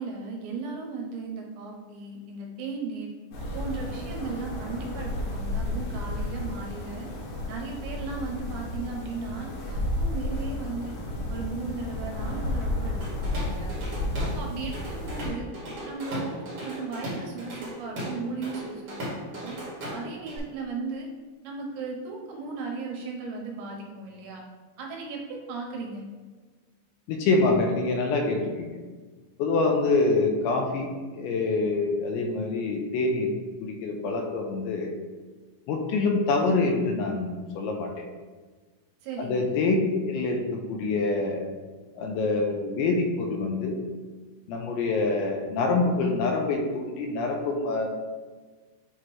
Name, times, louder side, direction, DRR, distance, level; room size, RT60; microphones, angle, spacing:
voice 1, 0.0-3.1 3.5-7.1 7.5-10.9 11.3-13.7 14.2-15.5 15.8-19.6 19.9-21.1 21.4-24.4 24.8-26.1 39.0-39.5, right 4 dB, 80° right, 0 dB, 3.0 m, -36 dB
sound 1, 3.3-15.3, left 1 dB, 65° left, 3.4 m, -32 dB
Drum kit / Drum, 13.0-14.4 14.7-20.4, equal, 50° right, 1.5 m, -37 dB
voice 2, 27.1-28.7 29.4-33.3 33.6-35.0 35.7-37.9 39.2-39.8 40.0-41.4 42.0-43.8 44.5-47.9, left 3 dB, 85° left, 2 dB, 3.0 m, -26 dB
8.0 x 2.9 x 4.6 m, 1.4 s
omnidirectional pair, 5.3 m